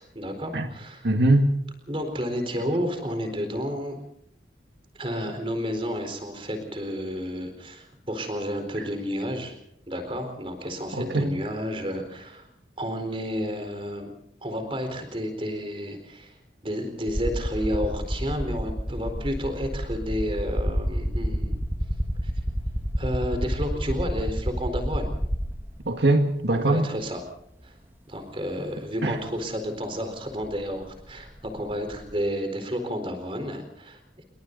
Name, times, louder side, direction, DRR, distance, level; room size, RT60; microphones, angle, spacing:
voice 1, 0.0-1.1 1.9-4.0 4.9-9.6 9.9-12.5 12.8-14.1 14.4-16.3 16.6-21.5 22.2-22.3 23.0-25.1 26.5-27.2 27.6-27.7 28.1-34.2, equal, 30° right, 7 dB, 4.3 m, -31 dB
voice 2, 1.0-1.5 10.9-11.3 25.9-26.9 29.0-29.1, right 2 dB, 75° right, 5 dB, 1.8 m, -21 dB
sound 1, 17.1-25.8 27.0-27.1 29.2-29.3 29.6-32.1, equal, 10° right, 1.6 m, -29 dB
28.5 x 22.5 x 4.0 m, 0.72 s
head